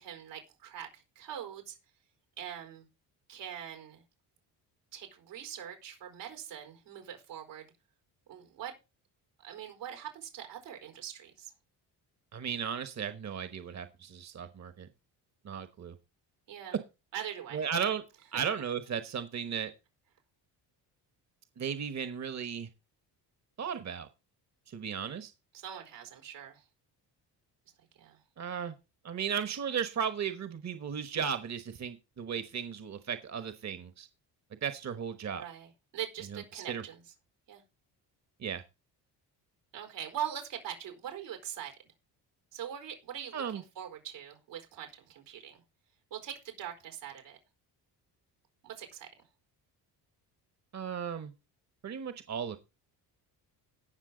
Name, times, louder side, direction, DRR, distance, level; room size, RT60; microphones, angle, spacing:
voice 1, 0.0-1.8 2.4-2.9 3.3-4.0 4.9-7.7 8.3-8.7 9.4-11.5 16.5-16.8 17.1-17.6 18.3-18.4 25.5-26.6 28.0-28.2 35.3-37.0 37.5-37.6 39.7-41.7 42.5-45.6 46.1-47.4 48.6-49.1, right 10 dB, 90° right, 4.2 m, -42 dB
voice 2, 12.3-14.9 15.4-16.0 17.5-18.0 18.3-19.7 21.6-22.7 23.6-24.1 24.7-25.3 28.4-28.7 29.0-34.1 34.6-35.4 36.3-36.8 38.4-38.6 43.3-43.6 50.7-51.3 51.8-52.6, right 7 dB, 40° right, 1.2 m, -35 dB
17.5 x 6.0 x 3.9 m
cardioid pair, 85°, 42 cm